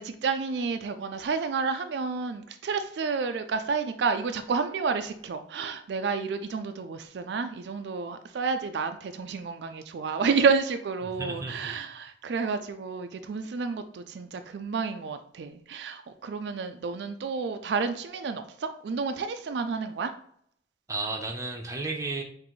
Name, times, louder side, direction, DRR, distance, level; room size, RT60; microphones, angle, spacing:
voice 1, 0.0-20.1, right 5 dB, 70° right, 8 dB, 0.4 m, -30 dB
voice 2, 11.0-11.7 20.9-22.2, right 3 dB, 15° right, 2 dB, 0.7 m, -33 dB
6.0 x 2.6 x 3.0 m, 0.65 s
head